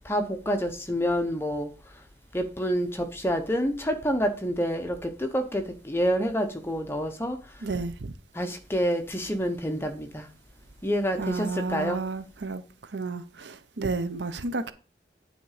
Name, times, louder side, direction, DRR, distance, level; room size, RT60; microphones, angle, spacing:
voice 1, 0.1-1.7 2.3-7.4 8.4-10.3 10.8-12.0, equal, 15° left, 0.8 m, -28 dB
voice 2, 7.6-8.1 11.2-12.6 12.9-14.7, right 3 dB, 90° right, 0.8 m, -31 dB
9.4 x 3.7 x 4.9 m
head